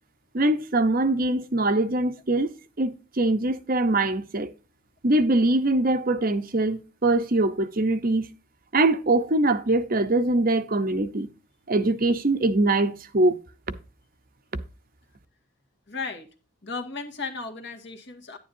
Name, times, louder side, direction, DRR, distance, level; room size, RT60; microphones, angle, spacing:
voice 1, 0.3-2.5 2.8-4.5 5.0-8.3 8.7-11.3 11.7-13.4, right 2 dB, 40° right, 0.8 m, -23 dB
voice 2, 15.9-16.3 16.6-18.4, left 4 dB, 55° left, 1.9 m, -35 dB
10.5 x 10.0 x 2.7 m
head